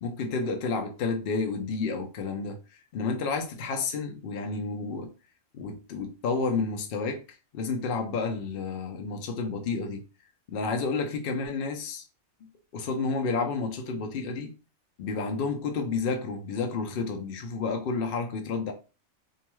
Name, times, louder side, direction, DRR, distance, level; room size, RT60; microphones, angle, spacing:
voice 1, 0.0-2.6 2.9-5.1 5.5-7.2 7.5-10.0 10.5-12.0 12.7-14.5 15.0-18.7, left 4 dB, 60° left, 0.6 m, -30 dB
2.7 x 2.1 x 3.0 m
omnidirectional pair, 1.4 m